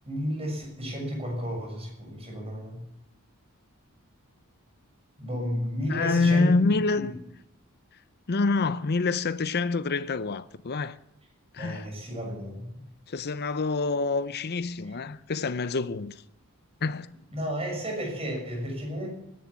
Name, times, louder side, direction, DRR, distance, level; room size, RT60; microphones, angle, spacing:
voice 1, 0.0-2.8 5.2-6.6 6.9-7.2 11.6-12.8 14.8-15.0 17.3-19.1, equal, 25° right, 6.4 m, -32 dB
voice 2, 5.9-7.1 8.3-11.0 11.5-11.9 13.1-16.2 16.8-17.1, left 3 dB, 50° left, 0.6 m, -26 dB
17.5 x 11.5 x 7.1 m
head